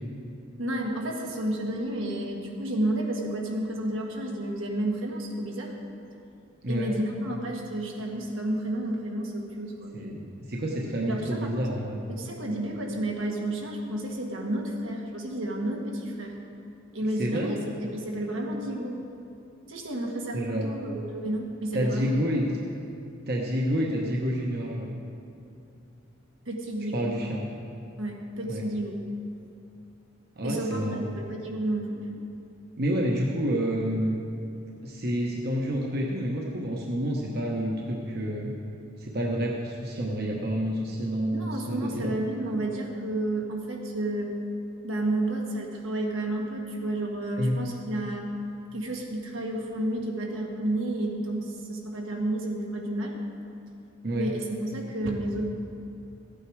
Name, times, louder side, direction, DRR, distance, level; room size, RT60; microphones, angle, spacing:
voice 1, 0.6-5.7 6.7-10.1 11.1-11.7 12.1-16.4 16.9-19.0 19.7-22.1 26.4-27.3 28.0-29.0 30.4-32.1 41.3-44.4 44.8-48.3 48.7-53.2 54.1-55.5, right 1 dB, 80° right, 0 dB, 1.7 m, -31 dB
voice 2, 9.9-12.0 17.2-17.5 20.3-20.7 21.7-22.6 23.3-24.9 26.9-27.5 28.5-28.6 30.4-31.1 32.8-34.2 34.8-38.5 39.0-42.1 47.4-47.5 54.0-54.3, equal, 50° right, -1 dB, 1.1 m, -28 dB
14.5 x 9.0 x 4.8 m, 2.6 s
head